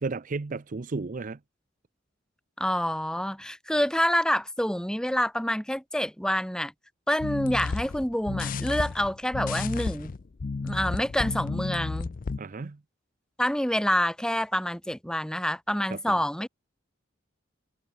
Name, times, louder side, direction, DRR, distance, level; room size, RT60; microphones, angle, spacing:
voice 1, 0.0-1.4 12.4-12.8 15.9-16.2, right 3 dB, 45° right, 0.6 m, -33 dB
voice 2, 2.6-6.7 7.1-10.1 10.6-12.1 13.4-16.5, equal, 5° left, 2.2 m, -27 dB
sound 1, 7.2-12.4, left 4 dB, 45° left, 0.5 m, -32 dB
head